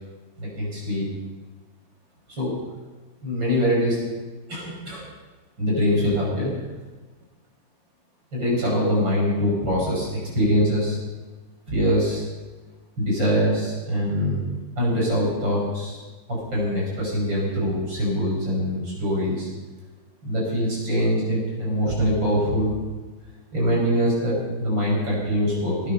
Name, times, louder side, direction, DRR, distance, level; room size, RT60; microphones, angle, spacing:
voice 1, 0.4-1.1 2.4-2.5 3.2-4.0 4.5-5.0 5.6-6.5 8.3-10.1 10.3-11.0 11.7-12.2 13.0-14.4 14.8-16.0 16.3-19.5 20.2-22.7 23.5-25.9, equal, 80° right, -4 dB, 6.8 m, -23 dB
19.0 x 9.9 x 5.7 m, 1.3 s
omnidirectional pair, 2.0 m